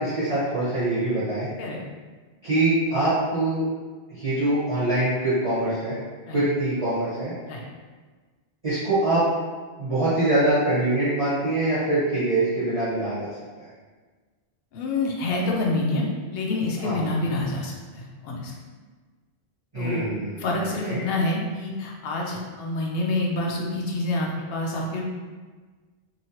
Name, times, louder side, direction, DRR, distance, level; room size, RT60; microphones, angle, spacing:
voice 1, 0.0-1.5 2.4-3.6 4.2-6.0 6.3-7.3 8.6-9.2 9.8-13.3 13.6-13.7 16.8-17.0 19.7-21.0, right 2 dB, 35° right, -13 dB, 1.1 m, -24 dB
voice 2, 14.7-18.5 19.7-20.1 20.4-25.0, left 2 dB, 70° left, -1 dB, 0.8 m, -27 dB
3.0 x 2.7 x 2.8 m, 1.4 s
omnidirectional pair, 1.0 m